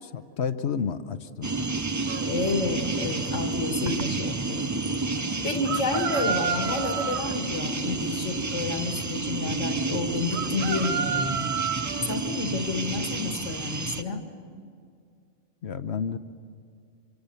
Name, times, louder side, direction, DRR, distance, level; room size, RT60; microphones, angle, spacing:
voice 1, 0.0-1.5 15.6-16.2, left 6 dB, 65° left, 11 dB, 1.1 m, -30 dB
sound 1, 1.4-14.0, right 3 dB, 25° right, 0.4 m, -30 dB
sound 2, 2.1-2.3 5.7-7.4 10.3-12.2, right 7 dB, 65° right, 1.1 m, -30 dB
voice 2, 2.2-4.6 5.4-11.4 12.0-14.3, left 3 dB, 85° left, 4 dB, 2.4 m, -30 dB
26.5 x 24.5 x 7.0 m, 2.2 s
omnidirectional pair, 1.3 m